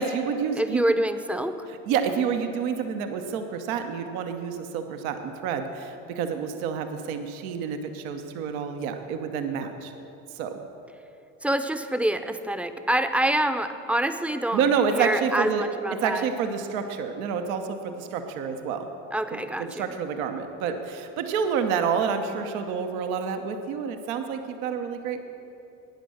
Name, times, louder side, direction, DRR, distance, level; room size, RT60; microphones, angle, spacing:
voice 1, 0.0-1.0 1.9-9.9 10.3-10.6 14.5-15.6 16.0-18.9 19.3-25.2, right 6 dB, 80° right, 6 dB, 1.0 m, -28 dB
voice 2, 0.5-1.7 11.4-14.6 14.9-16.3 19.1-19.9, right 1 dB, 5° right, 9 dB, 0.6 m, -26 dB
12.0 x 9.3 x 6.4 m, 2.9 s
hypercardioid pair, 65°, 41 cm